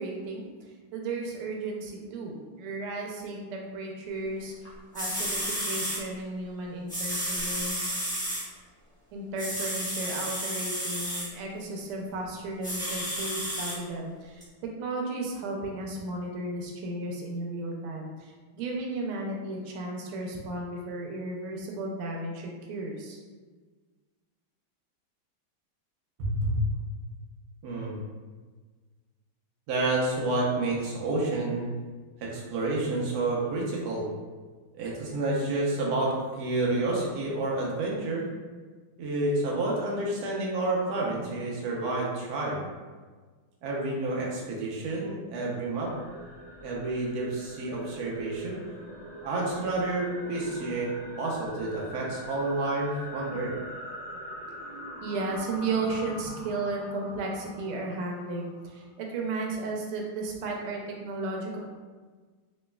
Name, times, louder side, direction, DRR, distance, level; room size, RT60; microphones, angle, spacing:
voice 1, 0.0-8.0 9.1-14.4 14.8-23.2 55.0-61.6, right 2 dB, 90° right, 0 dB, 1.5 m, -34 dB
sound 1, 4.6-4.7 4.9-6.0 6.9-8.4 9.4-11.3 12.6-13.8 14.4-14.5, equal, 5° left, 0.5 m, -32 dB
voice 2, 26.2-26.6 27.6-28.0 29.7-31.7 32.2-34.0 34.7-38.2 39.0-42.6 43.6-45.9 46.6-48.6 49.2-53.5, right 2 dB, 65° right, -3 dB, 1.0 m, -29 dB
sound 2, 45.8-58.9, equal, 40° right, 1.0 m, -43 dB
3.4 x 3.1 x 2.2 m, 1.4 s
omnidirectional pair, 2.3 m